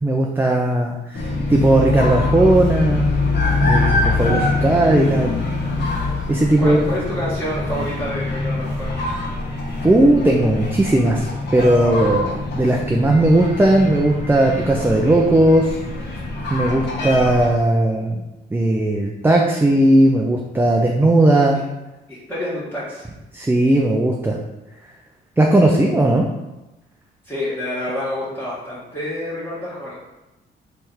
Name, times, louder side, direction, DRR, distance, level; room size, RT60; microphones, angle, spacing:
voice 1, 0.0-3.1 3.6-5.3 6.3-6.8 9.8-15.8 16.5-18.2 18.5-21.6 23.3-24.4 25.4-26.3, right 1 dB, 10° right, 0 dB, 0.5 m, -17 dB
sound 1, 1.1-17.5, left 3 dB, 60° left, 1.4 m, -23 dB
voice 2, 6.6-8.9 22.1-23.1 27.2-29.9, left 1 dB, 10° left, -9 dB, 1.5 m, -28 dB
3.6 x 3.3 x 4.3 m, 1.0 s
cardioid pair, 90°, 20 cm